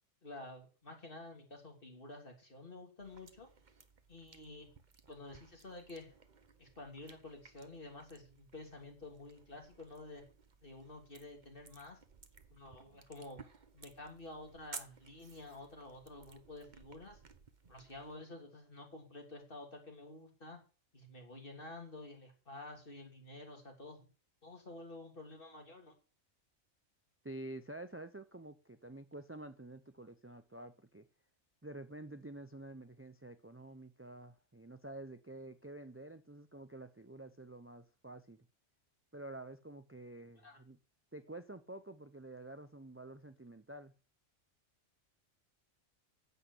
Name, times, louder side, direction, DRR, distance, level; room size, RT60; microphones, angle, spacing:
voice 1, 0.2-3.5 4.1-4.7 5.1-6.1 6.6-10.2 10.6-12.0 12.5-13.4 13.7-17.2 17.7-20.6 20.9-24.1 24.4-25.9 40.4-40.6, left 2 dB, 45° left, 3.2 m, -50 dB
sound 1, 3.0-18.2, right 5 dB, 40° right, 1.1 m, -57 dB
voice 2, 27.2-31.1 31.6-38.5 39.1-40.8 41.1-43.9, right 2 dB, 15° right, 0.6 m, -49 dB
9.5 x 8.1 x 8.2 m
omnidirectional pair, 1.2 m